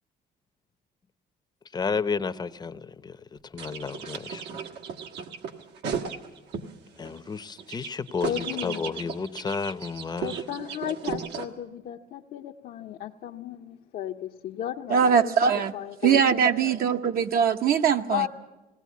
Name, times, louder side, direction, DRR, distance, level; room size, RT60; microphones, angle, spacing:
voice 1, 1.7-3.2 3.5-4.6 7.0-10.3, left 5 dB, 25° left, 13 dB, 0.7 m, -32 dB
sound 1, 3.6-6.7 7.0-11.5, right 6 dB, 90° right, 1.6 m, -35 dB
voice 2, 8.3-8.9 10.2-16.2 18.1-18.3, left 11 dB, 60° left, 1 dB, 0.8 m, -34 dB
voice 3, 14.9-15.7 16.0-18.3, right 7 dB, 60° right, 5 dB, 0.9 m, -21 dB
19.0 x 17.5 x 8.4 m, 1.1 s
cardioid pair, 110°, 17 cm